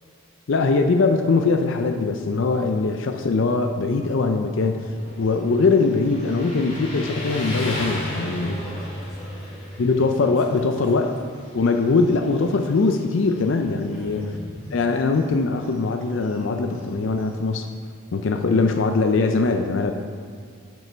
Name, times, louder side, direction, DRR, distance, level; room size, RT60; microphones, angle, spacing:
voice 1, 0.5-8.6 9.8-11.1 11.5-14.2 14.7-17.7 18.1-19.9, left 3 dB, 60° left, 5 dB, 0.4 m, -21 dB
Motorcycle, 4.9-17.6, left 1 dB, 30° left, 2.1 m, -35 dB
voice 2, 8.4-10.0 10.5-11.1 13.8-14.6 18.5-18.6, left 1 dB, ahead, -7 dB, 1.6 m, -43 dB
7.6 x 5.4 x 5.0 m, 2.1 s
head